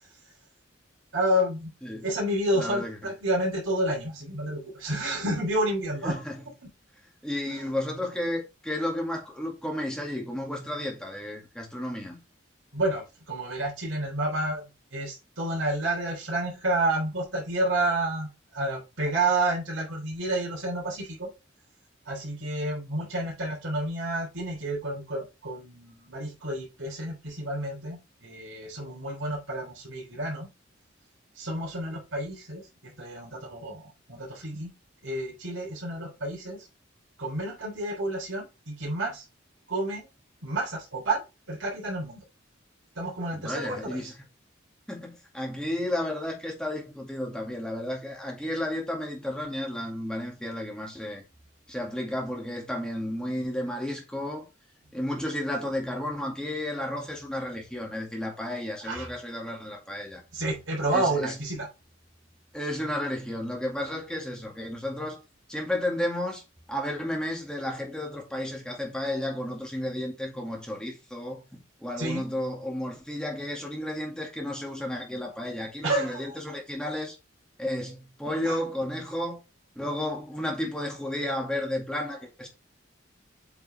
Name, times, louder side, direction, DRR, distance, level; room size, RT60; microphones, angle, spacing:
voice 1, 1.1-1.7 2.0-6.2 7.5-7.7 12.7-21.3 22.0-30.5 31.3-34.7 35.0-36.7 37.2-39.2 39.7-40.1 40.4-41.2 41.5-42.2 42.9-44.1 58.8-59.1 60.3-61.7 72.0-72.2 75.8-76.4 78.4-78.6, right 1 dB, 85° right, 3.4 m, -30 dB
voice 2, 2.6-3.0 6.0-6.4 7.2-12.2 43.3-44.1 44.9-51.2 51.7-54.5 54.9-60.2 60.9-61.4 62.5-65.2 65.5-66.4 66.7-77.2 77.6-79.4 79.8-82.5, left 1 dB, 5° left, 2.0 m, -32 dB
8.0 x 5.3 x 3.3 m
head